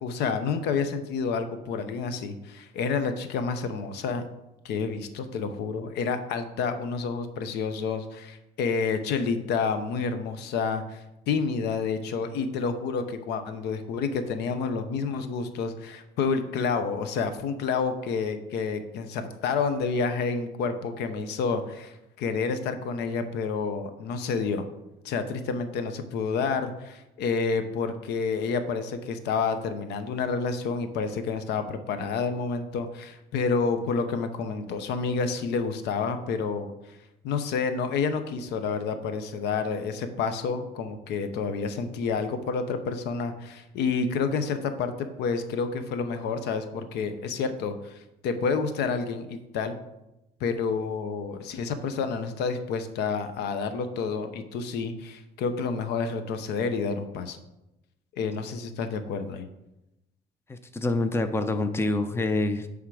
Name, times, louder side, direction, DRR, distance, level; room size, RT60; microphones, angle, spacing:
voice 1, 0.0-4.2 4.6-24.7 25.0-36.7 37.2-48.0 48.2-49.7 50.4-57.4 58.1-59.5, left 5 dB, 80° left, 9 dB, 0.8 m, -29 dB
voice 2, 60.5-62.7, left 2 dB, 15° left, 9 dB, 0.6 m, -26 dB
9.6 x 3.6 x 4.8 m, 0.92 s
cardioid pair, 110°, 17 cm